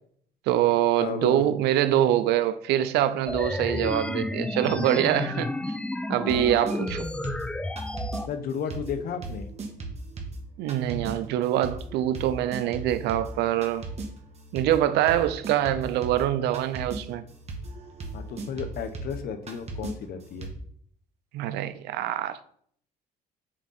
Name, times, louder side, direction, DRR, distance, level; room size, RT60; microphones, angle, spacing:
voice 1, 0.5-5.5 6.1-7.1 10.6-13.9 14.5-17.2 21.3-22.4, right 12 dB, 80° right, 0.5 m, -24 dB
voice 2, 1.0-1.4 8.3-9.5 18.1-20.5, left 7 dB, 65° left, 0.9 m, -33 dB
sound 1, 3.3-8.3, left 2 dB, 5° left, 0.3 m, -31 dB
sound 2, 6.3-8.2 8.7-20.5, right 2 dB, 40° right, 1.5 m, -38 dB
7.5 x 3.7 x 4.1 m
cardioid pair, 110°, 17 cm